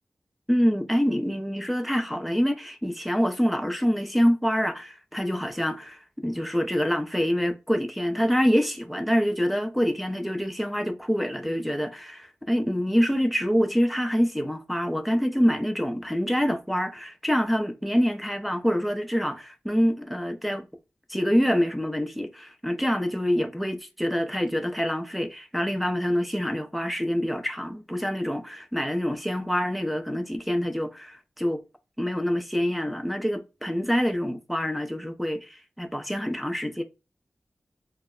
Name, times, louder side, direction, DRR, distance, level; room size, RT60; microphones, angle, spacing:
voice 1, 0.5-20.7 21.1-31.6 32.0-36.8, equal, ahead, 0.5 m, -26 dB
2.2 x 2.0 x 3.6 m
wide cardioid pair, 95°, 4 cm